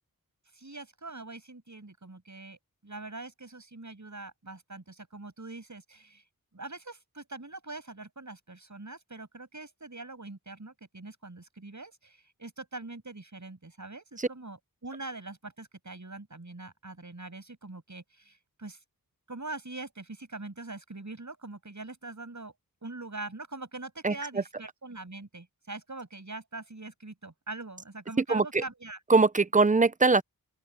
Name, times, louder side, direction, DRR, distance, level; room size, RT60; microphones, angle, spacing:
voice 1, 0.5-6.2 6.5-18.8 19.3-22.5 22.8-29.0, right 2 dB, 50° right, 6.9 m, -43 dB
voice 2, 28.3-28.6 29.1-30.2, right 3 dB, 20° right, 0.7 m, -22 dB
open air
wide cardioid pair, 60°, 36 cm